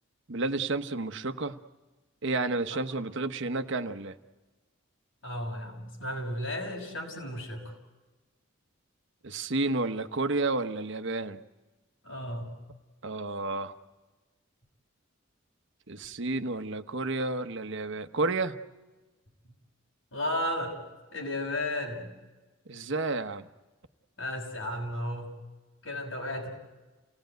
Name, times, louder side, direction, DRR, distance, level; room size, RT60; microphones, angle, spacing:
voice 1, 0.3-1.6 2.2-4.2 9.2-11.4 13.0-13.7 15.9-18.6 22.7-23.5, right 3 dB, 65° right, 9 dB, 1.1 m, -31 dB
voice 2, 5.2-7.7 12.0-12.5 20.1-20.8 21.1-22.1 24.2-25.3 25.8-26.5, left 1 dB, 80° left, 1 dB, 6.3 m, -34 dB
28.5 x 18.0 x 9.3 m, 1.2 s
head